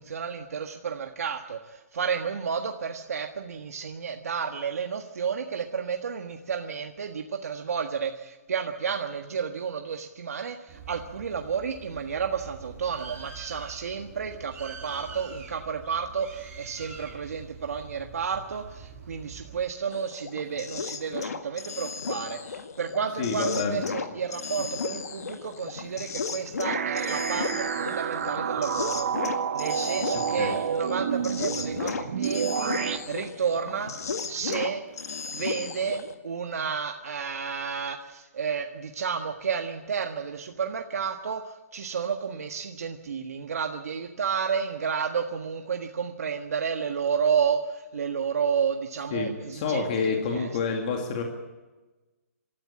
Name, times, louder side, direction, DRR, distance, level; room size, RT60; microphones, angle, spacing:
voice 1, 0.0-32.7 33.1-33.9 34.3-34.8 35.3-50.8, right 6 dB, 70° right, 4 dB, 1.6 m, -31 dB
Bird, 10.7-19.6, right 5 dB, 15° right, 5.7 m, -45 dB
sound 1, 19.9-36.1, left 5 dB, 80° left, 2.0 m, -35 dB
voice 2, 23.2-23.8 30.4-30.5 49.1-51.2, left 5 dB, 30° left, 2 dB, 2.2 m, -28 dB
sound 2, 26.6-33.0, right 7 dB, 50° right, 1.5 m, -29 dB
25.5 x 14.0 x 8.6 m, 1.2 s
hypercardioid pair, 175°, 8 cm